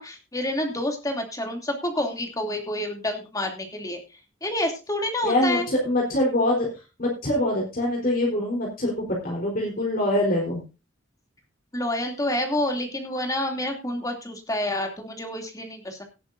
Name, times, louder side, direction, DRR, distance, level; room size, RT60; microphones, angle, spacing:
voice 1, 0.0-4.0 4.4-5.7 11.7-16.0, left 1 dB, 20° left, 3 dB, 2.9 m, -28 dB
voice 2, 5.2-6.7 7.0-10.6, left 1 dB, 50° left, -2 dB, 4.3 m, -24 dB
18.0 x 9.6 x 2.7 m, 0.29 s
head